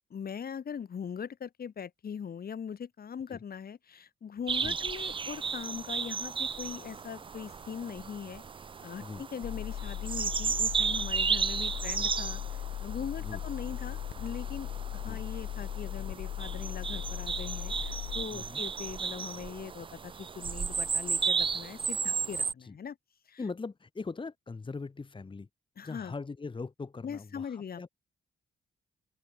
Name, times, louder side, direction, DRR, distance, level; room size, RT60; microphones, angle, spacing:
voice 1, 0.1-8.4 8.8-23.0 23.3-23.4 25.8-26.1 27.0-27.9, left 7 dB, 55° left, 3.1 m, -41 dB
sound 1, 4.5-22.5, right 5 dB, 30° right, 0.4 m, -34 dB
sound 2, 9.4-18.3, left 13 dB, 70° left, 0.4 m, -38 dB
voice 2, 18.3-18.6 22.6-22.8 23.4-25.5 25.8-27.9, left 4 dB, 25° left, 1.8 m, -40 dB
open air
cardioid pair, 110°, 19 cm